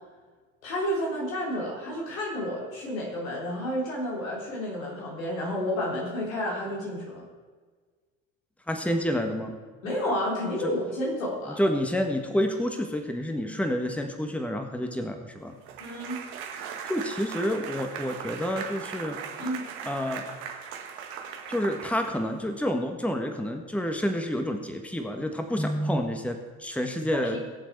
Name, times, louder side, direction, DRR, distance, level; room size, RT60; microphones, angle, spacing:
voice 1, 0.6-7.2 9.8-11.6 15.8-16.2 19.4-19.7 27.1-27.4, equal, 85° left, -3 dB, 3.7 m, -30 dB
voice 2, 8.7-9.5 11.6-15.5 16.9-19.2 19.8-20.2 21.5-27.4, equal, 5° left, 5 dB, 1.7 m, -29 dB
sound 1, 15.7-22.4, right 7 dB, 65° right, 1.8 m, -39 dB
21.0 x 7.1 x 4.8 m, 1.4 s
hypercardioid pair, 60°, 39 cm